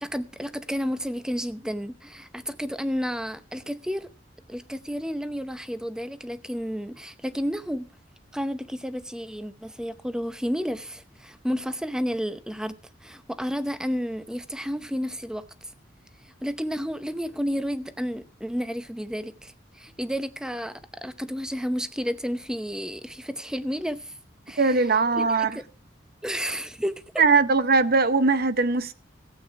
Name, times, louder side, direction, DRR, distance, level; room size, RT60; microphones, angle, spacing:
voice 1, 0.0-4.1 4.5-7.9 8.3-12.7 13.0-15.4 16.2-24.1 24.5-25.6 26.2-27.2, equal, 5° right, 0.7 m, -31 dB
voice 2, 24.6-25.5 27.2-28.9, right 4 dB, 55° right, 0.8 m, -20 dB
15.5 x 8.6 x 4.7 m
head